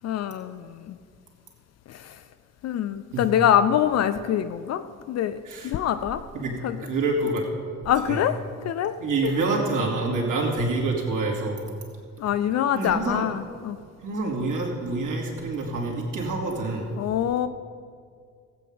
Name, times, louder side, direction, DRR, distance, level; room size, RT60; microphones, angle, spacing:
voice 1, 0.0-1.0 1.9-2.2 2.6-6.2 6.6-6.8 7.9-8.4 8.6-8.9 9.2-9.4 12.2-13.8 17.0-17.5, left 10 dB, 40° left, 11 dB, 0.5 m, -25 dB
voice 2, 6.8-7.4 8.1-8.2 9.0-11.6 12.7-13.3 14.0-16.9, right 3 dB, 50° right, -1 dB, 2.9 m, -27 dB
17.0 x 8.4 x 5.2 m, 2.1 s
figure-of-eight pair, 50°, 42 cm